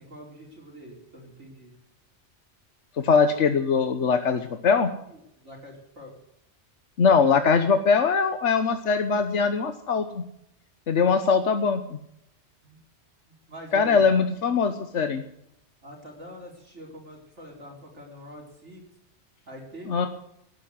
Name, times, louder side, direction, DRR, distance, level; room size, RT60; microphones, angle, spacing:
voice 1, 0.0-1.7 5.1-6.1 12.6-12.8 13.3-14.1 15.8-18.8 19.5-20.1, equal, 85° right, -2 dB, 4.8 m, -45 dB
voice 2, 3.0-4.9 7.0-10.2 10.9-12.0 13.7-15.2 19.9-20.1, left 5 dB, 85° left, 8 dB, 1.4 m, -22 dB
18.0 x 10.5 x 6.5 m, 0.78 s
omnidirectional pair, 1.2 m